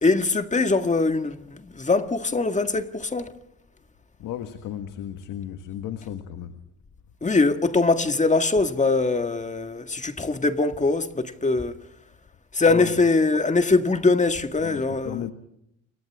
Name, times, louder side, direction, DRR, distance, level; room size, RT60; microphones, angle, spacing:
voice 1, 0.0-3.3 7.2-11.7 12.5-15.2, left 3 dB, 25° left, 1.9 m, -22 dB
voice 2, 4.2-6.6 12.7-13.0 14.6-15.3, left 10 dB, 85° left, 1.7 m, -34 dB
29.5 x 25.5 x 3.6 m
cardioid pair, 90°, 30 cm